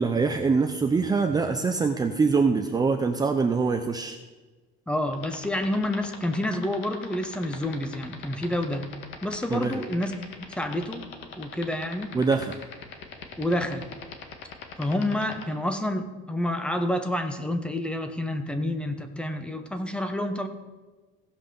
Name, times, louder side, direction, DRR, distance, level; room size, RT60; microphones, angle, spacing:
voice 1, 0.0-4.2 9.5-9.8 12.1-12.6, right 4 dB, 20° right, 5 dB, 0.6 m, -24 dB
voice 2, 4.9-8.9 9.2-10.1 10.6-11.0 11.4-12.1 13.4-13.9 14.8-20.5, left 1 dB, 5° left, 7 dB, 1.0 m, -28 dB
sound 1, 5.1-15.4, left 9 dB, 70° left, 1.8 m, -39 dB
16.0 x 5.7 x 6.8 m, 1.2 s
cardioid pair, 150°, 21 cm